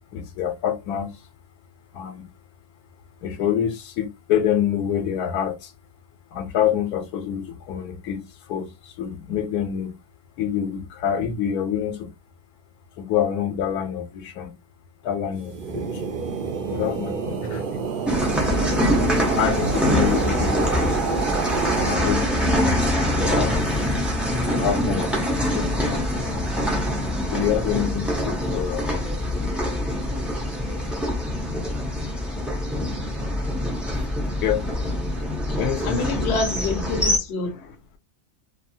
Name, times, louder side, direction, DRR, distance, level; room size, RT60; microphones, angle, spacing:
voice 1, 0.1-1.1 1.9-2.3 3.2-5.7 6.3-9.9 10.4-12.1 13.0-14.5 15.0-16.0 16.7-17.9 18.3-18.5 19.3-22.3 23.3-23.5 24.5-26.7 27.3-29.0 34.2-34.7 35.6-36.0, left 9 dB, 80° left, 1.1 m, -27 dB
sound 1, 15.4-22.8, right 5 dB, 60° right, 0.5 m, -28 dB
sound 2, 18.1-37.2, left 1 dB, ahead, 0.4 m, -24 dB
voice 2, 35.8-37.8, left 3 dB, 55° left, 0.8 m, -27 dB
2.6 x 2.4 x 2.6 m
omnidirectional pair, 1.6 m